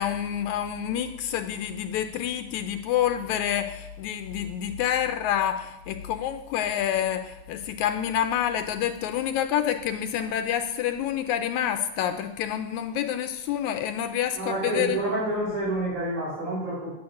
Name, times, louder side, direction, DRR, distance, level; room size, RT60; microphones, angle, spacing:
voice 1, 0.0-15.0, left 10 dB, 80° left, 8 dB, 2.0 m, -28 dB
voice 2, 14.4-16.9, right 1 dB, 80° right, -11 dB, 6.3 m, -28 dB
8.9 x 8.6 x 7.1 m, 0.91 s
omnidirectional pair, 3.4 m